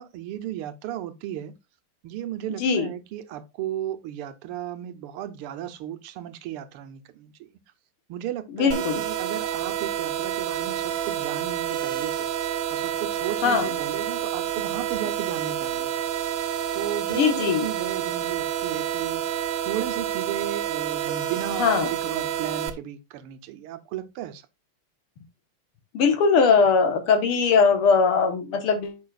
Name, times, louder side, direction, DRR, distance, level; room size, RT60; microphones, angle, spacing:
voice 1, 0.0-1.6 2.0-7.5 8.1-12.3 12.7-15.9 16.7-19.2 19.6-24.4, right 11 dB, 90° right, 1.7 m, -35 dB
voice 2, 2.6-2.9 8.5-9.0 13.4-13.7 17.1-17.7 21.6-21.9 25.9-29.0, left 5 dB, 85° left, 2.2 m, -20 dB
sound 1, 8.7-22.7, right 10 dB, 70° right, 1.5 m, -29 dB
8.6 x 6.4 x 2.4 m
omnidirectional pair, 2.4 m